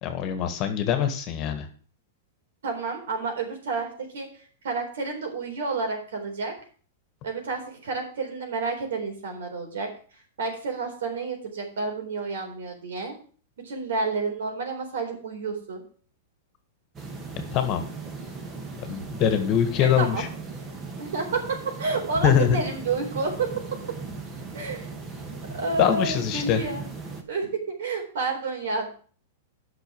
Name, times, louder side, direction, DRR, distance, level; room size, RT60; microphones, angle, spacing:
voice 1, 0.0-1.7 17.5-17.9 18.9-20.3 22.2-22.6 25.8-26.6, left 9 dB, 35° left, 8 dB, 1.7 m, -23 dB
voice 2, 2.6-6.5 7.2-9.9 10.4-13.1 13.6-15.8 20.0-20.2 21.0-23.5 24.5-24.9 25.5-26.8 27.3-28.9, right 4 dB, 80° right, 3 dB, 3.9 m, -30 dB
sound 1, 16.9-27.2, right 4 dB, 20° right, 1.8 m, -38 dB
9.3 x 6.1 x 7.1 m, 0.43 s
supercardioid pair, 150°, 0 cm